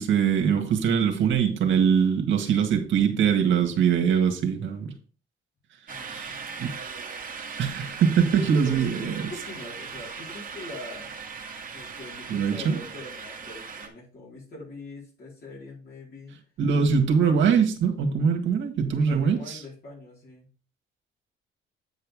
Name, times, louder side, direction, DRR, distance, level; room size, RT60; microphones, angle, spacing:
voice 1, 0.0-4.9 6.1-6.3 6.6-7.2 7.6-9.3 12.3-12.8 16.6-19.6, right 7 dB, 75° right, 4 dB, 1.8 m, -23 dB
voice 2, 5.9-6.6 8.3-11.1 11.7-16.4 19.0-20.5, left 2 dB, 55° left, -5 dB, 4.6 m, -43 dB
sound 1, 5.9-13.9, right 5 dB, 45° right, 1.8 m, -39 dB
9.2 x 5.7 x 3.6 m, 0.38 s
cardioid pair, 90°, 20 cm